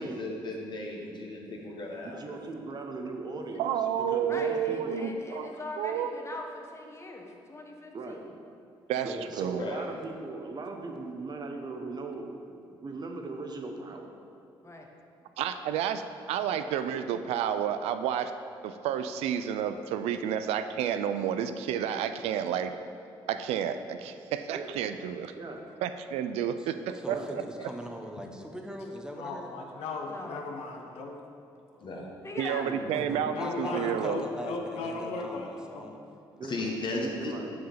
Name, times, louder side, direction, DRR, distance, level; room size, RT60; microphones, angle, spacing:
voice 1, 0.0-2.4 9.6-9.8 31.8-32.1 36.4-37.3, left 2 dB, 50° left, 0 dB, 1.3 m, -36 dB
voice 2, 2.1-3.7 3.9-5.0 7.9-8.2 9.0-14.1 24.5-24.7 25.3-25.6 27.1-27.3 32.5-33.4 36.3-36.6 36.9-37.5, right 3 dB, 45° right, 3 dB, 0.9 m, -39 dB
voice 3, 3.6-6.1 8.9-9.6 15.4-16.0 16.3-18.3 18.6-22.7 23.3-25.3 25.8-27.4 32.4-34.2, right 9 dB, 85° right, 10 dB, 0.4 m, -30 dB
voice 4, 4.3-8.3 14.6-14.9 30.1-30.5 32.2-34.1, left 2 dB, 25° left, 2 dB, 1.1 m, -42 dB
voice 5, 26.9-29.5 31.5-31.9 32.7-36.0, equal, 5° right, 2 dB, 0.9 m, -41 dB
voice 6, 29.2-31.2 33.3-35.9, left 4 dB, 85° left, 2 dB, 0.8 m, -37 dB
6.1 x 4.8 x 5.6 m, 2.5 s
supercardioid pair, 65°, 10 cm